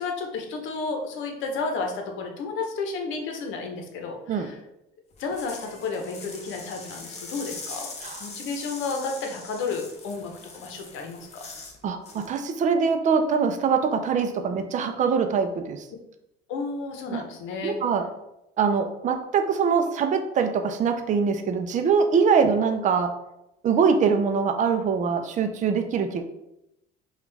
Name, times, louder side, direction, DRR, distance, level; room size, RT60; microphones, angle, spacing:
voice 1, 0.0-4.6 5.2-7.9 8.2-11.5 16.5-17.8, left 4 dB, 70° left, 3 dB, 0.8 m, -32 dB
sound 1, 5.1-11.8 12.1-12.4, left 3 dB, 35° left, 0.8 m, -41 dB
voice 2, 11.8-15.9 17.1-17.2 17.6-18.1 18.6-23.1 23.6-26.2, right 6 dB, 40° right, 7 dB, 0.5 m, -23 dB
5.0 x 2.4 x 3.3 m, 0.86 s
cardioid pair, 130°, 20 cm